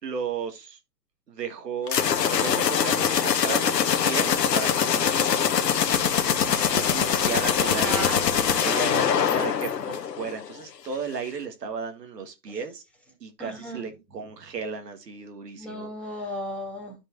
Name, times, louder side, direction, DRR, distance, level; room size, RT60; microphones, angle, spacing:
voice 1, 0.0-0.8 1.3-2.0 2.3-5.4 6.4-8.1 8.6-12.8 13.2-15.9, right 5 dB, 75° right, 2.0 m, -34 dB
sound 1, 1.9-10.5, left 8 dB, 80° left, 1.3 m, -23 dB
voice 2, 7.7-8.2 8.5-8.8 12.5-12.6 13.4-13.9 15.5-17.0, equal, 5° left, 2.6 m, -35 dB
12.5 x 5.4 x 2.5 m
hypercardioid pair, 135°, 49 cm